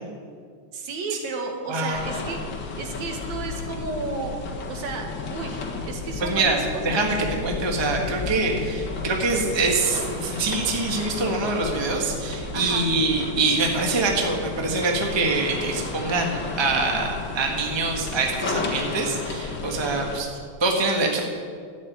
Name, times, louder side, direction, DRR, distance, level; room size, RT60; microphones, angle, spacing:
voice 1, 0.7-2.4 2.8-4.4 4.7-7.1 12.5-12.8, right 3 dB, 70° right, 3 dB, 2.8 m, -33 dB
voice 2, 1.7-2.1 6.2-21.3, right 3 dB, 15° right, 1 dB, 1.0 m, -25 dB
sound 1, 1.9-20.2, left 3 dB, 45° left, 2.0 m, -33 dB
12.5 x 8.6 x 9.4 m, 2.1 s
omnidirectional pair, 3.4 m